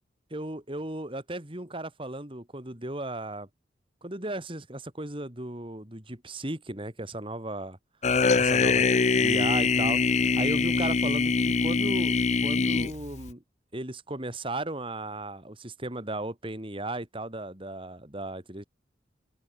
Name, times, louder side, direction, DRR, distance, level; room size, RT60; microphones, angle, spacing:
voice 1, 0.3-3.5 4.0-7.8 8.3-12.2 12.4-13.4 13.7-18.6, right 2 dB, 30° right, 2.8 m, -36 dB
sound 1, 8.0-13.3, left 4 dB, 40° left, 0.6 m, -23 dB
open air
head